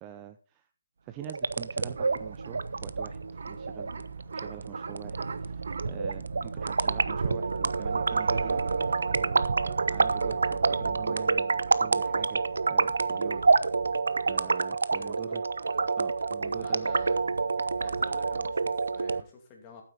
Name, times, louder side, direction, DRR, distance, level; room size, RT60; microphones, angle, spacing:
voice 1, 0.0-0.7 1.0-13.4 14.3-15.4 16.0-16.9, right 13 dB, 15° right, 9 dB, 0.4 m, -45 dB
sound 1, 1.1-19.2, right 5 dB, 60° right, 1.0 m, -38 dB
sound 2, 1.2-19.2, right 4 dB, 85° right, 0.7 m, -28 dB
voice 2, 14.9-15.4 16.6-17.2 17.8-19.8, left 5 dB, 15° left, 2 dB, 2.6 m, -50 dB
11.5 x 9.3 x 4.4 m, 0.38 s
hypercardioid pair, 170°, 0 cm